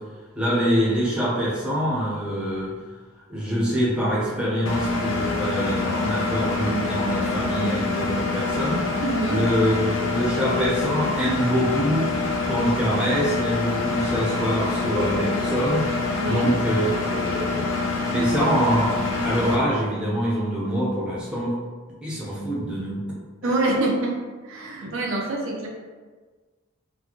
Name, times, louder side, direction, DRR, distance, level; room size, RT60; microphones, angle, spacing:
voice 1, 0.3-2.7 3.3-8.8 9.3-12.1 12.4-15.8 16.2-17.7 18.1-19.0 19.2-21.5 22.0-23.0 23.4-23.5 24.8-24.9, equal, 5° right, -7 dB, 0.7 m, -24 dB
Engine, 4.7-19.6, left 3 dB, 70° left, 0.5 m, -26 dB
voice 2, 9.0-9.4 16.2-16.5 23.4-24.2 24.4-25.7, right 2 dB, 75° right, -1 dB, 0.6 m, -25 dB
4.0 x 2.2 x 3.0 m, 1.4 s
head